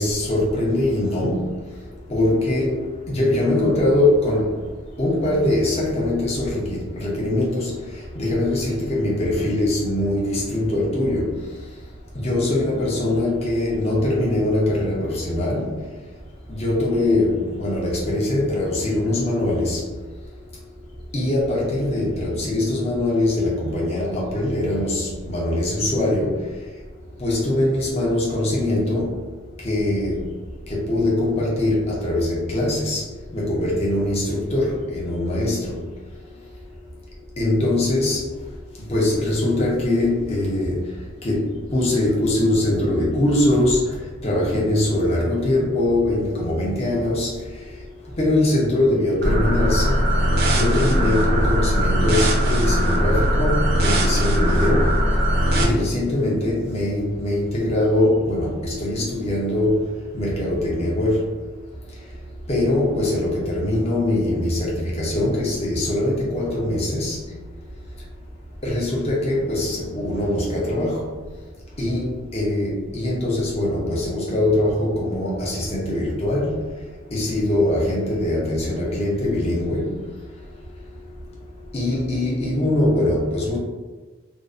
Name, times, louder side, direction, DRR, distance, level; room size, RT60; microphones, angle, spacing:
voice 1, 0.0-1.6 2.1-2.8 3.1-4.5 5.0-7.7 8.2-11.3 12.2-15.6 16.5-19.8 21.1-26.3 27.2-29.1 29.6-30.2 30.7-33.0 33.3-35.8 37.4-38.2 38.9-40.8 41.2-41.4 41.7-43.8 44.2-47.3 48.2-50.0 50.5-54.9 55.5-59.8 60.1-61.2 62.5-67.2 68.6-71.0 71.8-76.6 77.1-79.9 81.7-83.6, left 1 dB, 30° left, -4 dB, 0.5 m, -22 dB
sound 1, 49.2-55.6, equal, 50° right, 0.4 m, -19 dB
2.5 x 2.0 x 2.4 m, 1.3 s
head